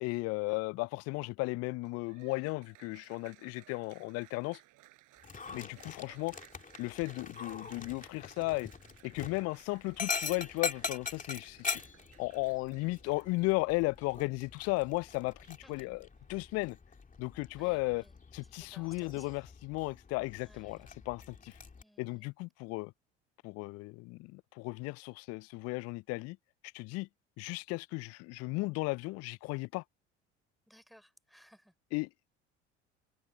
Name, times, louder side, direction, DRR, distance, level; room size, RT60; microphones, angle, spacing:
voice 1, 0.0-4.6 5.5-6.4 6.8-8.7 9.0-11.6 12.2-16.8 17.2-18.0 18.3-21.5 22.0-22.9 23.4-26.4 26.7-27.1 27.4-29.8 31.9-32.1, left 24 dB, 45° left, 0.4 m, -35 dB
Applause, 1.7-16.4, right 18 dB, 60° right, 7.7 m, -62 dB
Dog, 5.2-21.8, left 5 dB, 25° left, 2.9 m, -43 dB
voice 2, 5.3-5.7 15.6-15.9 17.6-18.1 18.6-19.5 20.4-20.9 21.8-22.3 30.7-31.7, equal, ahead, 3.5 m, -61 dB
hypercardioid pair, 65°, 35 cm